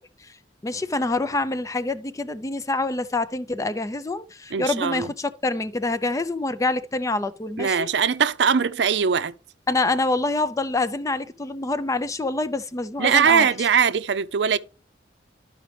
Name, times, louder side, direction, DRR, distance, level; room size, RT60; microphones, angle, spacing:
voice 1, 0.6-7.9 9.7-13.7, left 2 dB, 20° left, 0.4 m, -26 dB
voice 2, 4.5-5.1 7.6-9.3 13.0-14.6, right 6 dB, 75° right, 0.5 m, -21 dB
12.5 x 5.0 x 3.2 m
head